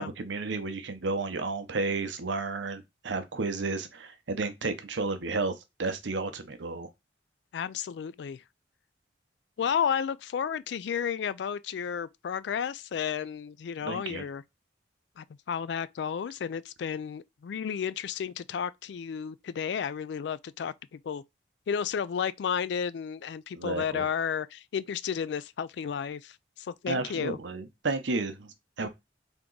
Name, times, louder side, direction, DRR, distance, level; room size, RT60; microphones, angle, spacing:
voice 1, 0.0-5.5 5.8-6.9 13.8-14.3 23.6-24.1 26.9-28.9, right 3 dB, 85° right, 0.7 m, -32 dB
voice 2, 7.5-8.4 9.6-14.4 15.2-21.2 21.7-27.4 28.8-28.9, left 7 dB, 70° left, 0.3 m, -32 dB
3.5 x 2.9 x 3.8 m
head